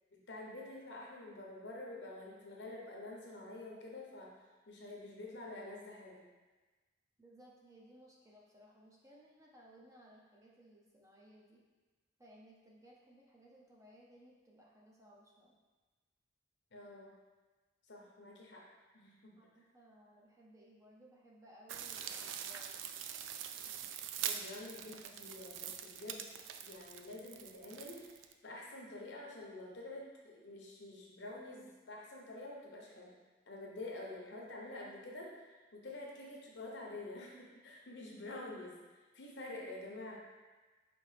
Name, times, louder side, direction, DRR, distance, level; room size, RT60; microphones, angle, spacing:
voice 1, 0.1-4.3 4.7-6.2 16.7-17.1 17.9-18.6 18.9-19.3 24.2-26.2 26.6-33.1 33.5-35.3 35.7-38.8 39.1-40.2, left 2 dB, 60° left, -2 dB, 0.8 m, -48 dB
voice 2, 7.2-11.6 12.2-15.6 19.4-22.9, right 1 dB, 15° right, -4 dB, 0.5 m, -61 dB
sound 1, 21.7-28.3, right 9 dB, 75° right, 0.3 m, -44 dB
5.2 x 3.0 x 3.3 m, 1.3 s
head